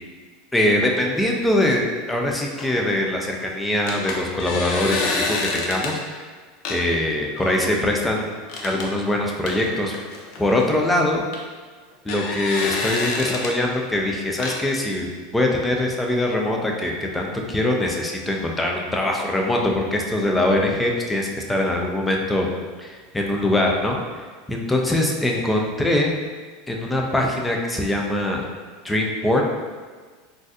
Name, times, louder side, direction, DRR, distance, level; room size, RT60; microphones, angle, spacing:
voice 1, 0.5-6.2 6.7-8.3 8.6-9.9 10.4-11.2 12.0-15.1 15.3-22.5 22.8-24.0 24.5-26.1 26.7-28.4 28.8-29.4, left 1 dB, 10° left, 0 dB, 0.5 m, -22 dB
sound 1, 2.6-3.0 3.9-5.9 6.6-6.8 7.3-7.7 8.5-8.9 9.5-11.0 11.3-11.4 11.9-13.5 14.3-14.6, left 3 dB, 60° left, 0.5 m, -28 dB
3.8 x 2.6 x 2.4 m, 1.5 s
supercardioid pair, 110°, 0 cm